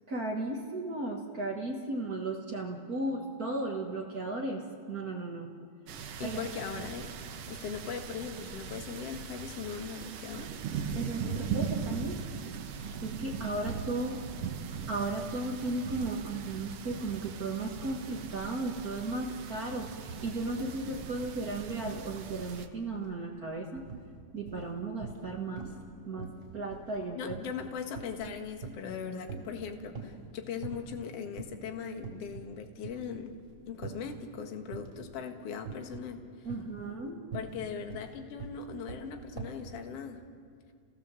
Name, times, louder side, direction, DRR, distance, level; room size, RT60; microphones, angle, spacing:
voice 1, 0.1-5.5 6.2-6.4 10.9-14.2 14.5-14.6 14.9-23.9 24.3-25.7 26.0-27.4 36.4-37.2, right 2 dB, 45° right, 0 dB, 1.2 m, -35 dB
sound 1, 5.9-22.7, right 6 dB, 70° right, 1.5 m, -39 dB
voice 2, 6.2-10.5 27.1-33.4 33.7-36.5 37.3-40.2, left 6 dB, 50° left, 5 dB, 2.2 m, -39 dB
sound 2, 22.9-23.1 23.4-24.1 24.5-25.3 25.6-25.9 26.2-29.0 29.3-30.2 30.6-31.0 31.4-31.6 32.0-32.5 32.8-34.2 34.7-35.1 35.7-36.1 36.4-39.7, right 4 dB, 20° right, 4.3 m, -43 dB
30.0 x 18.0 x 7.5 m, 2.1 s
omnidirectional pair, 4.1 m